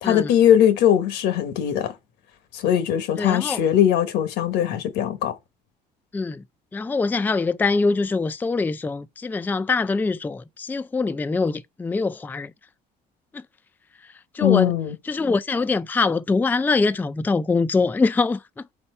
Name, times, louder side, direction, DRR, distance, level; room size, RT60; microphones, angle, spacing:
voice 1, 0.0-1.9 2.5-5.4 14.4-14.9, left 10 dB, 90° left, 1.2 m, -20 dB
voice 2, 3.2-3.6 6.1-6.4 6.7-12.5 13.3-13.4 14.3-14.7 15.1-18.6, left 4 dB, 10° left, 0.3 m, -23 dB
4.3 x 4.2 x 5.4 m
cardioid pair, 110°, 17 cm